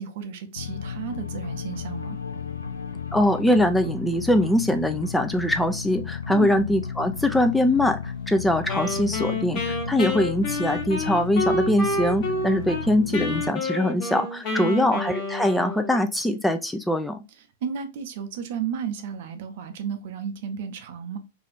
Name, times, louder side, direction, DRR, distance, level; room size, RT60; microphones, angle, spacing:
voice 1, 0.0-2.2 6.3-6.5 14.5-14.7 17.4-21.2, right 7 dB, 55° right, 0.6 m, -33 dB
sound 1, 0.6-13.5, left 7 dB, 80° left, 0.4 m, -34 dB
voice 2, 3.1-17.2, left 1 dB, 5° left, 0.3 m, -22 dB
Wind instrument woodwind instrument, 8.7-12.8 13.1-16.0, left 2 dB, 40° left, 1.0 m, -29 dB
2.6 x 2.3 x 3.4 m
figure-of-eight pair, 100°, 0 cm